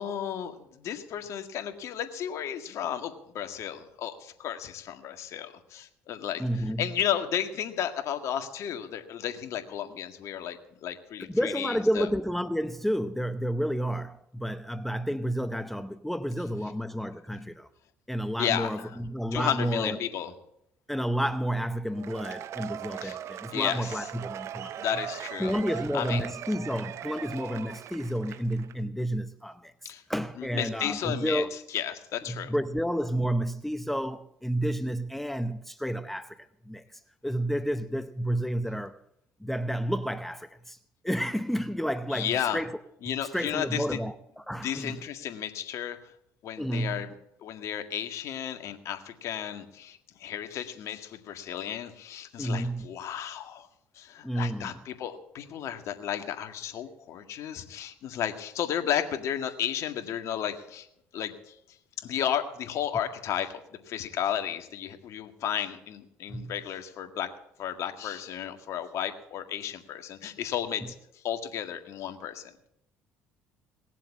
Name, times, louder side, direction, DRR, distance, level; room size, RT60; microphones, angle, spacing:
voice 1, 0.0-6.4 6.8-12.1 18.4-19.0 19.3-20.3 23.0-23.2 23.5-24.1 24.8-25.6 25.9-26.2 29.9-30.0 30.4-32.5 42.1-42.6 43.0-43.8 44.6-46.0 46.4-47.1 47.4-53.7 54.0-60.9 61.1-61.5 62.0-63.5 63.9-67.3 67.6-70.9 71.2-72.5, left 10 dB, 65° left, 1.8 m, -33 dB
voice 2, 6.4-6.9 11.2-17.7 18.1-20.0 20.9-24.8 25.4-31.5 32.3-36.8 37.2-39.0 39.4-40.8 41.0-42.8 43.1-45.0 46.6-47.1 52.4-52.9 54.2-54.8 66.3-66.6, equal, 5° left, 0.8 m, -31 dB
Cheering / Applause / Crowd, 21.9-28.7, right 10 dB, 60° right, 0.6 m, -40 dB
19.0 x 7.5 x 8.5 m
supercardioid pair, 75°, 5 cm